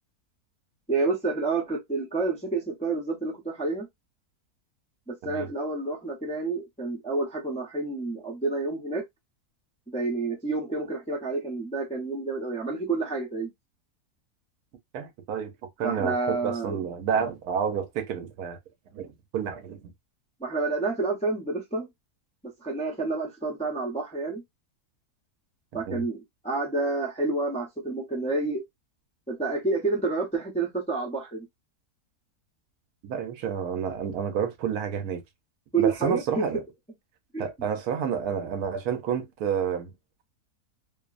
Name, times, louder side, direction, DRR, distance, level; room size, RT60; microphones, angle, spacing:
voice 1, 0.9-3.9 5.1-9.0 9.9-13.5 15.8-16.8 20.4-21.9 22.6-24.4 25.7-26.2 26.4-28.6 29.3-31.5 35.7-36.5 37.3-37.4, right 3 dB, 10° left, 0.4 m, -29 dB
voice 2, 14.9-15.5 15.8-18.6 18.9-19.9 25.9-26.0 33.0-35.2 35.8-36.6 37.4-39.9, right 7 dB, 75° right, 1.1 m, -29 dB
2.8 x 2.0 x 2.3 m
omnidirectional pair, 1.6 m